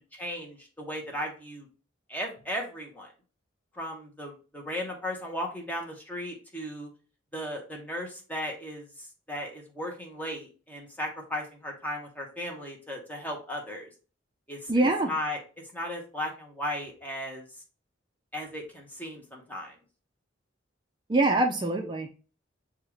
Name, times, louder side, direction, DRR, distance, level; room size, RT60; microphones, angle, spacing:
voice 1, 0.1-1.7 2.1-3.1 3.7-6.9 7.3-13.9 14.5-15.4 15.7-17.4 18.3-19.7, left 1 dB, 10° left, 0 dB, 1.0 m, -36 dB
voice 2, 14.7-15.1 21.1-22.1, right 2 dB, 25° right, 3 dB, 0.4 m, -24 dB
6.6 x 2.4 x 3.0 m, 0.36 s
head